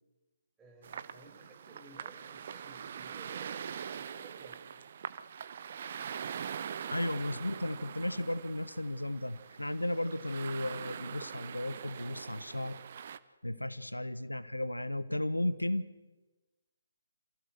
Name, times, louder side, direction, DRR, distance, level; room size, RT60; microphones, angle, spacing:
voice 1, 0.6-3.7 3.9-4.7, right 2 dB, 10° right, -2 dB, 5.4 m, -56 dB
sound 1, 0.8-13.2, right 8 dB, 45° right, 0.8 m, -43 dB
voice 2, 6.9-12.8 13.4-15.9, left 1 dB, 90° left, 15 dB, 1.1 m, -34 dB
28.0 x 16.0 x 6.5 m, 1.1 s
figure-of-eight pair, 140°, 0 cm